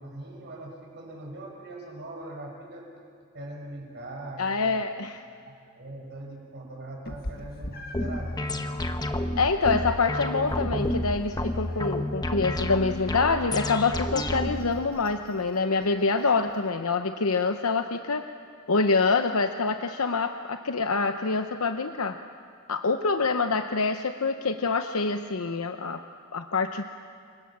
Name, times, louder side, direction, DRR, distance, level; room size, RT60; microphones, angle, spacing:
voice 1, 0.0-2.9 3.3-4.8 5.4-8.7, right 1 dB, 50° right, 1 dB, 6.2 m, -41 dB
voice 2, 4.4-5.2 9.4-18.3 18.7-22.2 22.7-26.0 26.3-26.8, left 4 dB, 75° left, 7 dB, 0.9 m, -26 dB
Meow, 7.0-16.7, left 1 dB, 45° left, 1.8 m, -47 dB
sound 1, 7.9-14.8, left 1 dB, 20° left, 1.2 m, -30 dB
29.0 x 25.5 x 7.4 m, 2.4 s
head